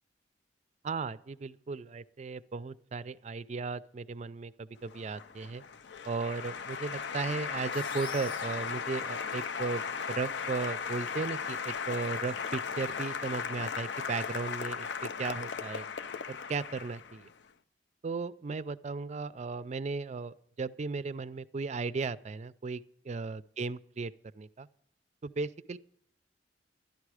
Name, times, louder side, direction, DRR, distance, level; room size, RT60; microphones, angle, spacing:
voice 1, 0.8-5.6 6.1-9.8 10.1-15.9 16.3-17.3 18.0-24.7 25.2-25.8, right 4 dB, 40° right, 17 dB, 0.4 m, -36 dB
Applause, 4.8-17.3, left 6 dB, 65° left, 0.5 m, -37 dB
sound 1, 7.7-9.7, left 4 dB, 85° left, 1.7 m, -48 dB
13.0 x 10.5 x 4.8 m, 0.74 s
head